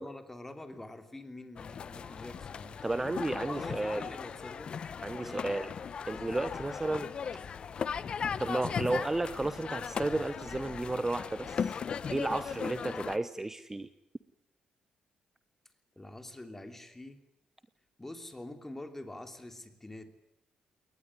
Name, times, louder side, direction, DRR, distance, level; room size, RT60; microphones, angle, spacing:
voice 1, 0.0-2.8 3.4-4.7 5.2-5.6 15.9-17.2 18.0-20.1, left 1 dB, 15° left, 7 dB, 3.2 m, -45 dB
sound 1, 1.6-13.2, left 6 dB, 50° left, 1.0 m, -38 dB
voice 2, 2.8-4.0 5.0-5.7 6.0-7.1 8.4-11.7 12.1-13.9, right 2 dB, 15° right, 13 dB, 0.9 m, -33 dB
21.5 x 19.5 x 9.9 m, 0.85 s
cardioid pair, 95°, 2 cm